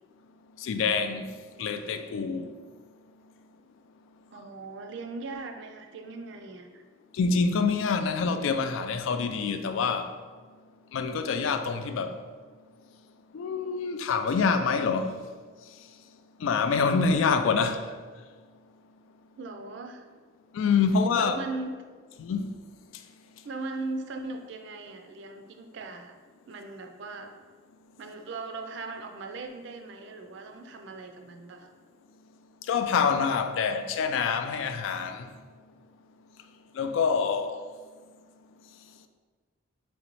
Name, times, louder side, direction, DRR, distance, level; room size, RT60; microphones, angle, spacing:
voice 1, 0.6-1.3 1.6-2.5 7.2-10.1 10.9-12.2 13.3-15.2 16.4-17.9 20.5-21.4 22.2-22.5 32.7-35.3 36.8-37.6, left 5 dB, 75° left, 0.3 m, -26 dB
voice 2, 4.3-6.8 19.4-20.0 21.1-21.9 23.4-26.1 26.5-27.3 28.0-31.7, right 3 dB, 60° right, 0.4 m, -38 dB
3.9 x 3.1 x 3.0 m
head